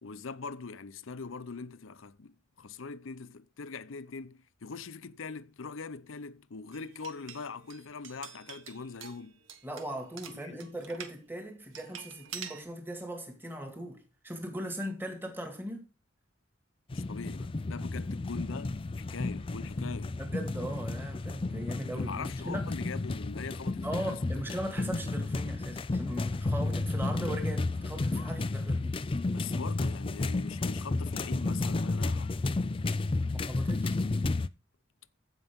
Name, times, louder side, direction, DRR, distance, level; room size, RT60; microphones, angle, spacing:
voice 1, 0.0-9.4 10.4-10.6 16.9-20.2 22.0-24.2 29.3-32.4, left 4 dB, 75° left, 0.7 m, -42 dB
sound 1, 6.7-11.2 11.7-12.6, right 8 dB, 75° right, 1.4 m, -47 dB
voice 2, 9.6-15.8 20.2-22.7 23.8-29.0 33.3-34.0, right 1 dB, 10° right, 2.0 m, -39 dB
sound 2, 16.9-34.5, left 2 dB, 25° left, 0.4 m, -32 dB
15.0 x 5.6 x 3.6 m
head